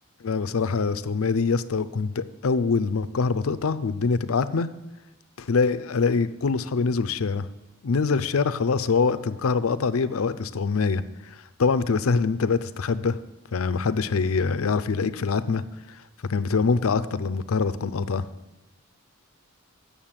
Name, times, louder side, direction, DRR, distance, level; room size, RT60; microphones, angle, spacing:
voice 1, 0.2-4.7 5.4-7.5 7.8-11.0 11.6-13.2 13.5-15.6 16.3-18.3, left 4 dB, 80° left, 13 dB, 0.5 m, -24 dB
8.8 x 7.0 x 7.4 m, 1.0 s
head